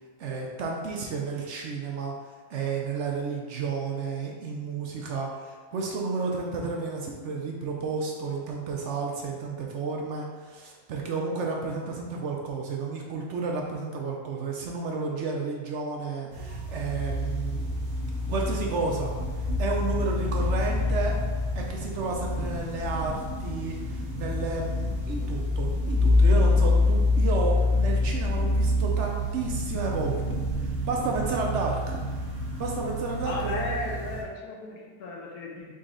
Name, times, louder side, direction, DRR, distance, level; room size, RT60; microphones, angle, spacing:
voice 1, 0.2-2.1 2.5-17.7 18.3-19.1 19.6-21.1 21.6-30.2 30.6-32.0 32.6-33.6, right 4 dB, 65° right, 0 dB, 0.8 m, -31 dB
sound 1, 16.3-34.2, left 2 dB, 45° right, 1.1 m, -27 dB
voice 2, 33.2-35.7, left 2 dB, 85° left, -2 dB, 1.2 m, -35 dB
4.0 x 3.1 x 3.7 m, 1.5 s
omnidirectional pair, 1.6 m